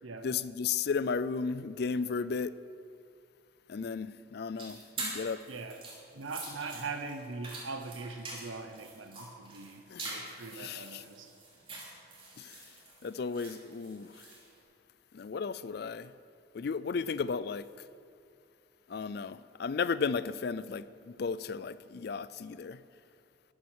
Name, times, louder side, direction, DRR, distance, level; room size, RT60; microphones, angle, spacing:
voice 1, 0.2-2.5 3.7-5.4 9.9-10.1 10.6-11.0 12.4-12.6 13.0-14.2 15.1-16.1 16.5-17.7 18.9-22.8, left 5 dB, 55° left, 0.4 m, -34 dB
sound 1, 4.6-14.5, right 3 dB, 30° right, 3.0 m, -45 dB
voice 2, 5.5-5.9 6.1-11.3, right 3 dB, 85° right, 0.9 m, -41 dB
12.5 x 12.0 x 6.3 m
head